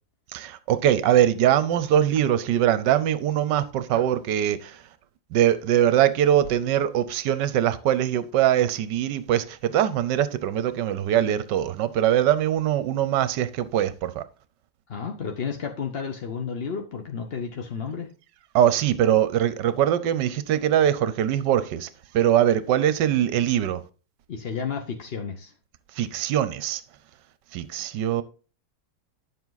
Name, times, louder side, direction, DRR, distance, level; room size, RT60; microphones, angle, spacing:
voice 1, 0.3-4.8 5.3-14.2 18.5-23.8 25.9-26.8 27.5-28.2, right 11 dB, 70° right, 1.2 m, -22 dB
voice 2, 14.9-18.1 24.3-25.5, left 6 dB, 50° left, 0.7 m, -32 dB
10.0 x 7.2 x 4.0 m
omnidirectional pair, 2.2 m